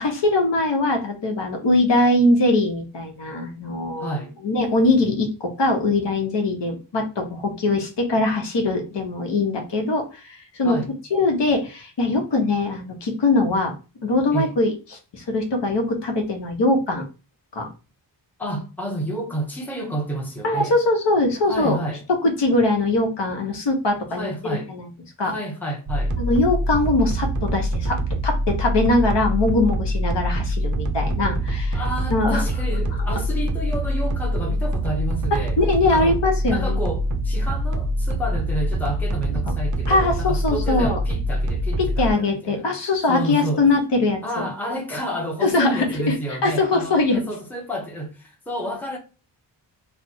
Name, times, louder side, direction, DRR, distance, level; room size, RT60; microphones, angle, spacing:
voice 1, 0.0-4.1 4.4-10.8 11.1-13.7 14.0-14.7 15.1-17.0 17.5-17.7 20.4-21.8 22.2-24.3 24.7-24.8 25.2-25.3 26.2-28.0 28.2-31.8 32.1-32.4 35.3-36.8 39.9-41.0 42.0-44.5 45.4-46.2 46.4-47.2, left 2 dB, 65° left, 1.1 m, -21 dB
voice 2, 4.0-4.4 10.6-10.9 14.3-14.5 18.4-20.7 21.5-22.0 24.1-24.7 25.2-26.2 31.7-35.6 35.9-36.2 36.5-42.6 43.1-43.7 44.2-49.0, right 1 dB, 5° left, 0.8 m, -30 dB
sound 1, 25.9-42.1, right 1 dB, 40° right, 0.5 m, -24 dB
3.3 x 2.1 x 4.2 m
wide cardioid pair, 115°, 46 cm